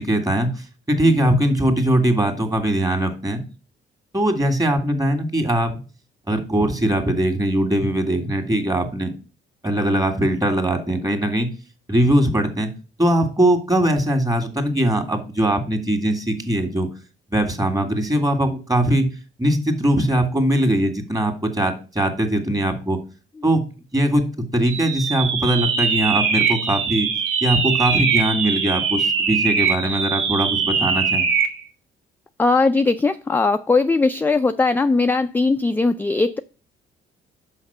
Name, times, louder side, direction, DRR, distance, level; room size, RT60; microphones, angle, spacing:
voice 1, 0.0-3.4 4.1-5.7 6.3-9.1 9.6-11.5 11.9-12.7 13.0-16.9 17.3-19.1 19.4-23.0 23.4-23.6 23.9-27.1 27.4-31.3, right 1 dB, 20° right, 5 dB, 1.9 m, -21 dB
sound 1, 24.7-31.6, right 6 dB, 80° right, 1.4 m, -22 dB
voice 2, 32.4-36.4, left 3 dB, 10° left, 9 dB, 0.4 m, -19 dB
5.8 x 5.3 x 6.7 m, 0.35 s
cardioid pair, 90°, 20 cm